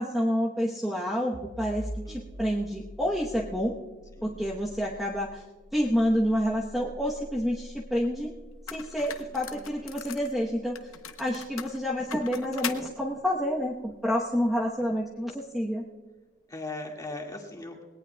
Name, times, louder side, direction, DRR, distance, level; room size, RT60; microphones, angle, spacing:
voice 1, 0.0-3.7 4.2-5.4 5.7-8.3 8.7-10.8 11.2-15.8, equal, ahead, -3 dB, 1.0 m, -28 dB
sound 1, 1.3-12.8, equal, 70° right, 2.9 m, -45 dB
voice 2, 2.1-2.7 4.2-4.5 9.3-10.0 11.2-11.3 12.6-12.9 16.5-17.8, left 2 dB, 20° left, 0 dB, 1.9 m, -41 dB
sound 2, 8.0-8.1 8.7-10.3 10.8-12.9, left 8 dB, 85° left, 0.9 m, -39 dB
20.5 x 18.0 x 2.3 m, 1.4 s
head